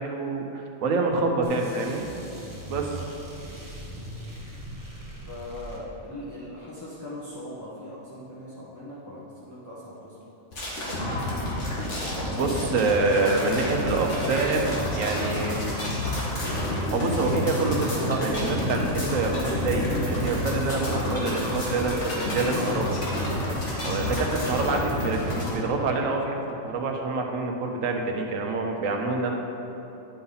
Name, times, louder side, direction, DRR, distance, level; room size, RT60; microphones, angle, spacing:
voice 1, 0.0-2.1 2.7-2.9 12.3-15.6 16.9-23.0 23.8-26.4 26.6-29.3, right 3 dB, 75° right, 2 dB, 1.2 m, -26 dB
sound 1, 1.4-6.2, right 1 dB, 15° right, 1.0 m, -40 dB
voice 2, 5.0-10.2 23.9-24.2, left 1 dB, 15° left, -8 dB, 1.0 m, -40 dB
sound 2, 10.5-25.5, left 1 dB, 60° left, 2.0 m, -29 dB
sound 3, 19.9-24.5 24.8-24.9, right 2 dB, 50° right, 1.0 m, -42 dB
10.5 x 5.6 x 4.0 m, 3.0 s
omnidirectional pair, 1.4 m